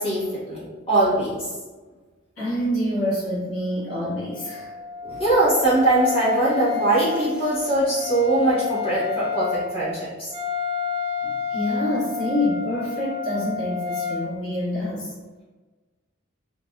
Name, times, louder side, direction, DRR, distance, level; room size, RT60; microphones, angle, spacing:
voice 1, 0.0-1.5 5.2-10.3, right 2 dB, 25° left, -9 dB, 1.1 m, -22 dB
voice 2, 2.4-4.7 5.0-5.2 11.2-15.1, left 1 dB, 70° left, -7 dB, 1.1 m, -27 dB
Wind instrument woodwind instrument, 4.2-14.3, left 6 dB, 30° right, 0.5 m, -30 dB
2.6 x 2.1 x 2.3 m, 1.3 s
head